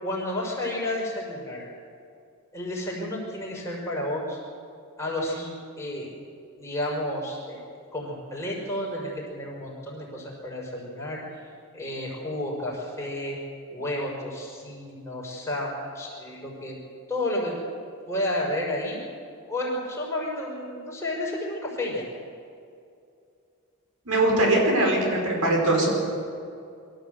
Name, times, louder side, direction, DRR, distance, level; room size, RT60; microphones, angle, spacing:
voice 1, 0.0-1.6 2.5-4.4 5.0-6.1 6.5-7.6 7.9-11.2 11.7-13.4 13.7-16.8 17.1-17.6 18.1-19.0 19.5-22.1, left 1 dB, 15° left, -4 dB, 5.7 m, -31 dB
voice 2, 24.1-26.0, right 1 dB, 85° right, 0 dB, 5.4 m, -21 dB
24.0 x 14.0 x 8.0 m, 2.4 s
head